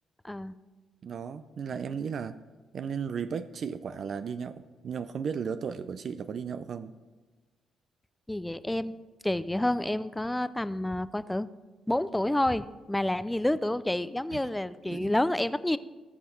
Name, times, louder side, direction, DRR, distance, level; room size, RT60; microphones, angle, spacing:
voice 1, 1.0-2.4 2.7-6.9 14.3-14.4 14.9-15.1, right 6 dB, 55° right, 12 dB, 0.5 m, -35 dB
voice 2, 8.3-9.0 9.2-11.5 11.9-15.8, left 1 dB, 10° left, 15 dB, 0.4 m, -29 dB
19.0 x 6.4 x 4.5 m, 1.3 s
cardioid pair, 90°, 0 cm